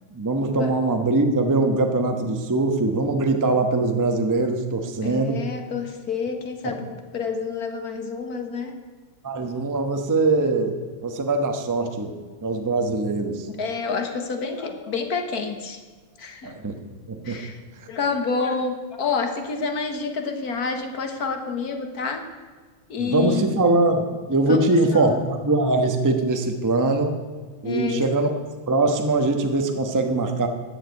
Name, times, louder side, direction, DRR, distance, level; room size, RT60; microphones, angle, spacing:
voice 1, 0.1-5.4 6.6-6.7 9.2-10.8 11.0-12.1 12.4-13.5 16.4-16.8 17.1-17.4 23.0-27.2 27.6-28.3 28.7-30.5, right 2 dB, 20° right, 5 dB, 0.5 m, -22 dB
voice 2, 5.0-8.7 13.6-15.8 16.2-16.5 17.2-17.6 17.9-22.2 22.9-23.5 24.5-25.2 27.6-28.1, left 5 dB, 50° left, 6 dB, 1.5 m, -28 dB
12.5 x 8.0 x 8.2 m, 1.5 s
omnidirectional pair, 2.4 m